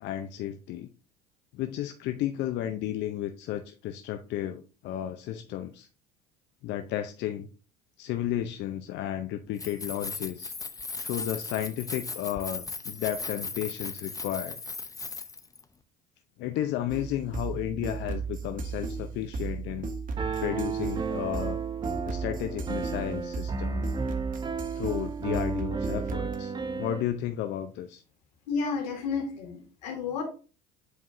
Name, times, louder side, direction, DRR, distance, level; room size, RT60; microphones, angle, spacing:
voice 1, 0.0-0.9 1.5-5.9 6.6-7.5 8.0-10.5 11.0-14.6 16.4-19.9 20.4-21.6 22.0-23.9 24.7-28.0, left 11 dB, 60° left, 7 dB, 0.6 m, -33 dB
Keys jangling, 9.5-15.6, left 4 dB, 15° left, 0.7 m, -37 dB
sound 1, 16.9-26.4, right 5 dB, 40° right, 1.2 m, -36 dB
Piano, 20.2-27.0, right 4 dB, 20° right, 0.7 m, -33 dB
voice 2, 28.5-30.2, left 5 dB, 85° left, 3 dB, 2.0 m, -31 dB
8.0 x 4.6 x 2.6 m, 0.35 s
hypercardioid pair, 75°, 21 cm